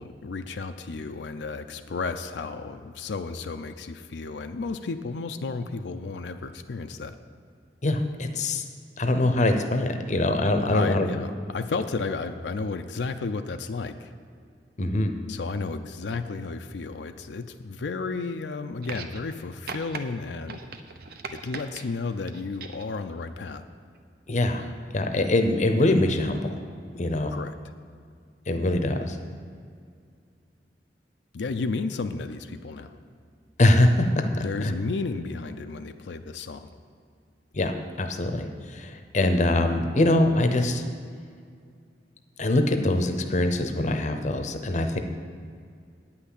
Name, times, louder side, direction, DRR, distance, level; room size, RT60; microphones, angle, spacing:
voice 1, 0.0-7.2 10.7-14.1 15.3-20.6 21.3-23.6 27.3-27.5 31.3-33.0 34.4-36.7, left 4 dB, 80° left, 7 dB, 0.5 m, -33 dB
voice 2, 7.8-8.6 9.0-11.1 14.8-15.1 24.3-24.7 24.9-26.6 27.0-27.3 28.5-29.2 33.6-34.2 34.6-34.7 37.5-40.8 42.4-45.0, left 1 dB, 45° left, 6 dB, 0.7 m, -23 dB
sound 1, 18.8-19.4 19.7-20.0 20.5-21.8 22.3-22.9 24.0-24.1, right 4 dB, 60° right, 0.7 m, -39 dB
9.3 x 5.8 x 8.2 m, 2.2 s
head